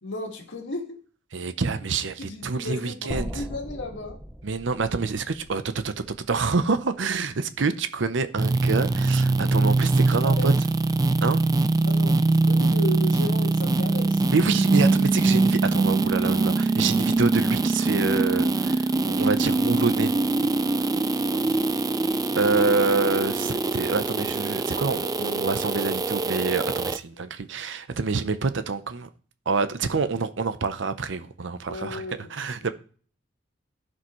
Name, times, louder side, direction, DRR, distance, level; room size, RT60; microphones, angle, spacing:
voice 1, 0.0-1.0 2.2-4.2 10.2-10.5 11.9-14.2 21.3-21.7 31.7-32.3 32.6-32.7, left 1 dB, 70° left, 1.9 m, -35 dB
voice 2, 1.3-3.4 4.4-10.5 11.2-11.4 14.3-20.1 22.4-29.1 29.5-32.0 32.3-32.7, right 4 dB, 70° right, 0.7 m, -26 dB
sound 1, 3.1-7.3, equal, 5° right, 0.8 m, -39 dB
sound 2, 8.4-27.0, right 3 dB, 20° right, 0.3 m, -23 dB
15.0 x 5.1 x 3.1 m
head